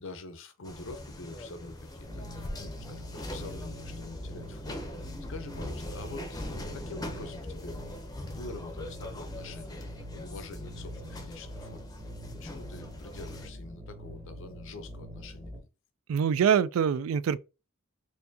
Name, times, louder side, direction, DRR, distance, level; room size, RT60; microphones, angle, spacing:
voice 1, 0.0-11.9 12.4-15.5, left 3 dB, 65° left, 0.6 m, -46 dB
sound 1, 0.6-13.5, left 1 dB, 20° left, 0.6 m, -42 dB
sound 2, 2.0-15.6, equal, 25° right, 1.0 m, -44 dB
voice 2, 16.1-17.4, right 7 dB, 75° right, 0.3 m, -24 dB
4.4 x 2.6 x 2.7 m
head